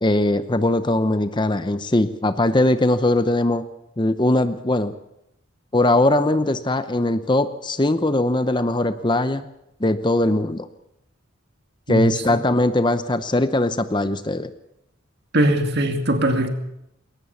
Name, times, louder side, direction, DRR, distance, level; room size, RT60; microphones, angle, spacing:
voice 1, 0.0-3.6 4.0-4.9 5.7-9.4 9.8-10.7 11.9-14.5, left 1 dB, 20° left, 11 dB, 0.7 m, -20 dB
voice 2, 15.3-16.5, right 1 dB, 55° right, 6 dB, 2.5 m, -20 dB
21.0 x 18.5 x 7.1 m, 0.82 s
head